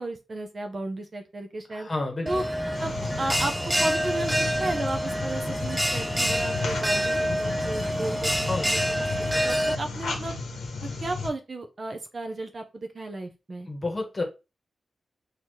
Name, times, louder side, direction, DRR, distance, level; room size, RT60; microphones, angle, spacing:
voice 1, 0.0-1.9 2.3-2.4 2.8-3.5 3.8-10.3 11.0-13.7, right 2 dB, 40° right, 4 dB, 0.6 m, -34 dB
voice 2, 1.7-2.4 8.5-8.7 13.7-14.2, left 2 dB, 30° left, 2 dB, 1.2 m, -30 dB
Bell, 2.3-9.8, equal, 5° right, 0.3 m, -27 dB
sound 1, 2.7-11.3, left 4 dB, 90° left, 0.9 m, -35 dB
3.9 x 2.8 x 3.1 m, 0.28 s
wide cardioid pair, 125°, 0 cm